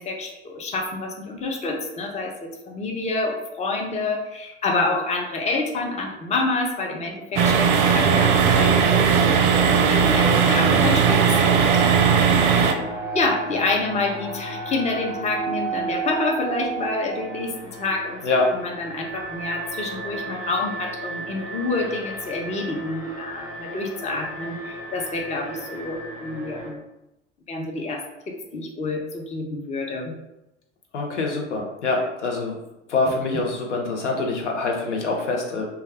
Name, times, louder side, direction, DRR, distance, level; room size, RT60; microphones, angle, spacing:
voice 1, 0.0-12.1 13.1-17.5 17.8-26.8 27.5-30.2, left 3 dB, 20° left, 1 dB, 0.5 m, -28 dB
sound 1, 7.4-12.7, right 6 dB, 55° right, 0.4 m, -18 dB
Alarm, 9.0-26.7, right 2 dB, 75° left, 1.3 m, -33 dB
voice 2, 30.9-32.5 32.9-35.7, left 3 dB, 90° left, 0 dB, 0.6 m, -25 dB
2.2 x 2.1 x 3.3 m, 0.93 s
hypercardioid pair, 70°, 34 cm